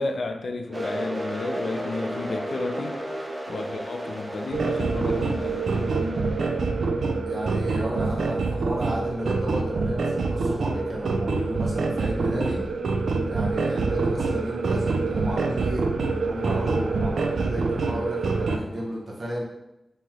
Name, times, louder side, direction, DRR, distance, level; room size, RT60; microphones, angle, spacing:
voice 1, 0.0-3.0 3.5-5.8 13.3-13.4, left 3 dB, 70° left, 5 dB, 0.4 m, -32 dB
sound 1, 0.7-8.3, equal, 20° right, 0.6 m, -34 dB
sound 2, 4.5-18.6, right 3 dB, 80° right, 0.3 m, -26 dB
voice 2, 7.3-12.6 13.2-15.8 16.2-19.4, equal, 50° right, -5 dB, 1.0 m, -33 dB
3.1 x 2.8 x 3.6 m, 0.91 s
wide cardioid pair, 110°, 0 cm